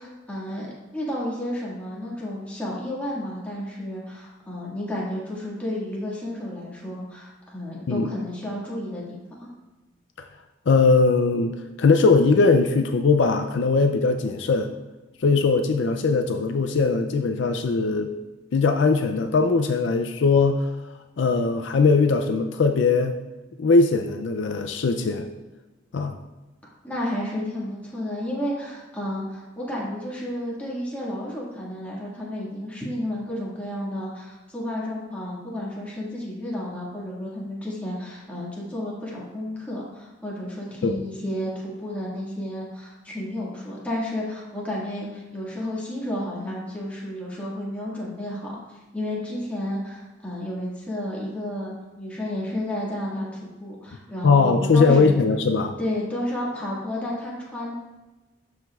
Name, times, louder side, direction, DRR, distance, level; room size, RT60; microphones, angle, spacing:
voice 1, 0.0-9.5 26.8-48.6 48.9-55.1 55.8-57.7, left 1 dB, 5° left, -6 dB, 1.8 m, -32 dB
voice 2, 10.7-14.7 15.2-18.1 18.5-20.7 21.2-23.2 23.6-25.3 25.9-26.2 40.8-41.0 54.2-55.8, left 4 dB, 65° left, 6 dB, 0.4 m, -20 dB
12.0 x 5.0 x 2.4 m, 1.1 s
head